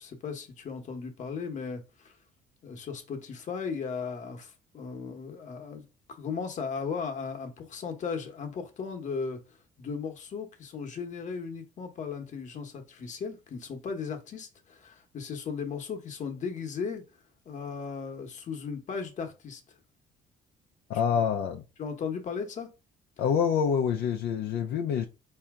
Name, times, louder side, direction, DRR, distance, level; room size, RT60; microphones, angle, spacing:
voice 1, 0.0-2.1 2.6-9.4 9.8-17.0 17.5-19.6 21.8-22.7, left 5 dB, 45° left, 1.1 m, -36 dB
voice 2, 20.9-21.6 23.2-25.1, left 7 dB, 75° left, 0.6 m, -26 dB
4.4 x 2.8 x 3.6 m
cardioid pair, 110°, 17 cm